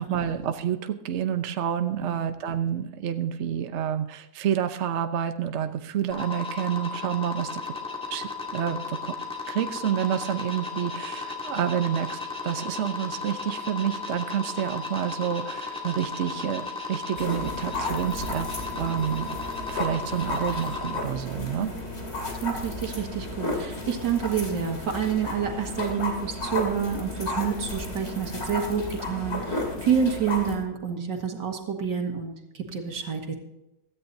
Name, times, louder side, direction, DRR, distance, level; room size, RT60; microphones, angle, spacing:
voice 1, 0.0-7.7 8.1-9.1 9.5-18.5 18.7-19.3 19.7-21.7, right 9 dB, 50° right, 8 dB, 0.9 m, -29 dB
sound 1, 6.1-21.0, left 4 dB, 5° left, 2.3 m, -35 dB
sound 2, 17.1-30.5, left 2 dB, 40° left, 2.8 m, -33 dB
voice 2, 21.5-22.0 22.4-33.3, right 7 dB, 85° right, 3 dB, 2.4 m, -29 dB
16.5 x 13.5 x 2.7 m, 0.92 s
omnidirectional pair, 1.9 m